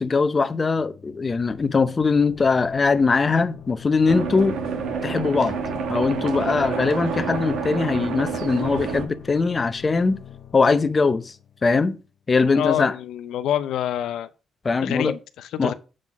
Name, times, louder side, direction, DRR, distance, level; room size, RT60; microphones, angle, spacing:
voice 1, 0.0-4.6 5.0-5.6 5.9-10.2 10.5-11.3 11.6-12.0 12.3-12.9 14.6-15.2 15.6-15.7, left 4 dB, 30° left, 0.6 m, -21 dB
sound 1, 0.8-12.2, left 9 dB, 50° left, 1.1 m, -44 dB
sound 2, 4.1-9.1, right 5 dB, 80° right, 1.1 m, -28 dB
voice 2, 12.4-14.3 14.8-15.7, left 11 dB, 80° left, 0.5 m, -27 dB
7.7 x 3.8 x 5.9 m
cardioid pair, 90°, 0 cm